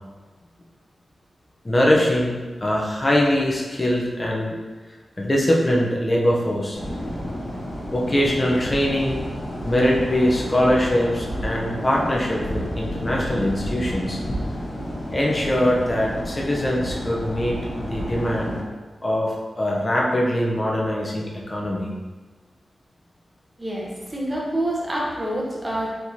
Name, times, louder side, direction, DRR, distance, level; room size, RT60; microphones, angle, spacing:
voice 1, 1.6-4.6 5.2-6.8 7.9-9.2 9.6-14.2 15.1-18.6 19.0-21.9, left 1 dB, 25° left, -3 dB, 0.6 m, -22 dB
sound 1, 6.7-18.6, equal, 45° left, 1.2 m, -30 dB
voice 2, 23.6-25.9, right 1 dB, 15° right, -3 dB, 0.8 m, -27 dB
4.5 x 3.5 x 2.8 m, 1.3 s
wide cardioid pair, 140°, 0 cm